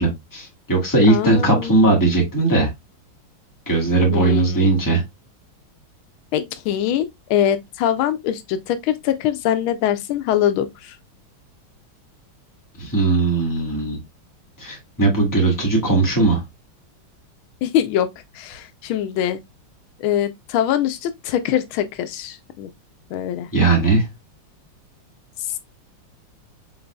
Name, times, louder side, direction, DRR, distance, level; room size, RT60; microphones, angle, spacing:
voice 1, 0.0-2.7 3.6-5.0 12.8-14.0 14.6-16.4 23.5-24.1, right 3 dB, 10° left, 1.6 m, -18 dB
voice 2, 1.1-1.7 4.1-4.7 6.3-11.0 17.6-18.1 18.3-19.4 20.0-22.7 23.1-23.5 25.5-25.6, left 10 dB, 85° left, 1.4 m, -23 dB
5.2 x 4.0 x 2.2 m
omnidirectional pair, 2.2 m